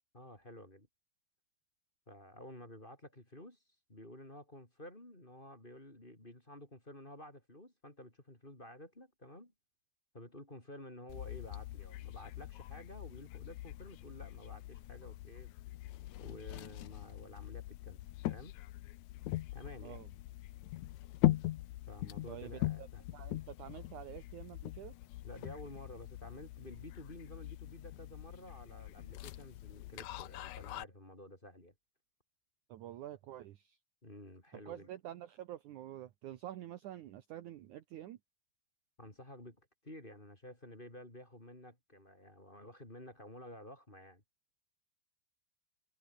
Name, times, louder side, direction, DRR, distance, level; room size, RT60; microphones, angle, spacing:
voice 1, 0.1-0.9 2.1-3.6 3.9-9.5 10.1-15.5 16.2-18.0 18.3-18.6 19.5-20.0 21.9-23.0 25.2-31.7 34.0-34.9 39.0-39.6 39.8-44.2, left 1 dB, 15° left, 3.8 m, -52 dB
sound 1, 11.1-30.8, left 16 dB, 90° left, 1.6 m, -41 dB
voice 2, 22.3-22.9 23.1-25.0 32.7-33.8 34.7-38.2, right 12 dB, 70° right, 2.1 m, -48 dB
omnidirectional pair, 4.4 m